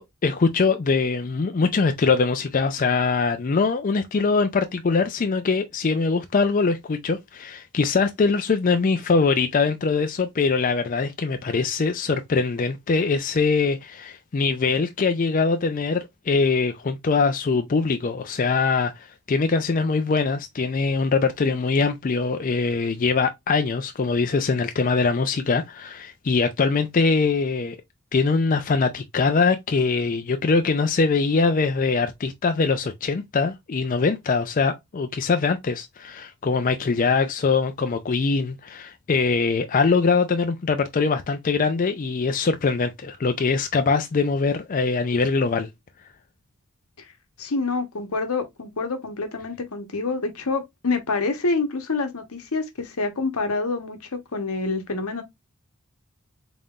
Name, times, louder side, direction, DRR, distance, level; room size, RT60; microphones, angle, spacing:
voice 1, 0.0-27.8 28.1-45.7, left 4 dB, 35° left, 0.4 m, -22 dB
voice 2, 47.4-55.2, left 3 dB, 80° left, 1.0 m, -27 dB
3.9 x 3.6 x 2.3 m
head